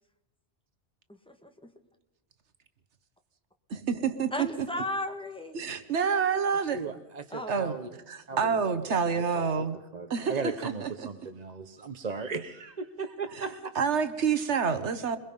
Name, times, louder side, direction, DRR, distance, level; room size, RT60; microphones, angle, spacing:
voice 1, 1.3-1.7 4.3-5.9 7.3-7.6, left 1 dB, 5° left, 5 dB, 1.6 m, -36 dB
voice 2, 3.7-4.5 5.5-6.8 7.5-7.7 8.1-9.8 10.1-10.9 13.4-13.5 13.7-15.2, right 6 dB, 80° right, 11 dB, 1.4 m, -28 dB
voice 3, 6.7-7.9 8.3-9.5 9.9-13.7, right 4 dB, 40° right, 8 dB, 0.9 m, -37 dB
23.0 x 21.5 x 5.4 m, 0.98 s
omnidirectional pair, 1.2 m